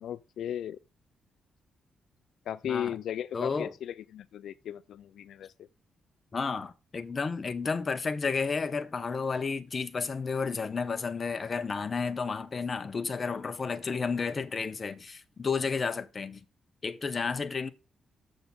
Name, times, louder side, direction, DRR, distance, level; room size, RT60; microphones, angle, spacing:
voice 1, 0.0-0.8 2.5-5.5, left 10 dB, 75° left, 0.3 m, -36 dB
voice 2, 2.6-3.0 3.3-3.7 6.3-16.4 16.8-17.7, left 5 dB, 30° left, 0.7 m, -32 dB
7.1 x 6.4 x 5.2 m
cardioid pair, 135°, 0 cm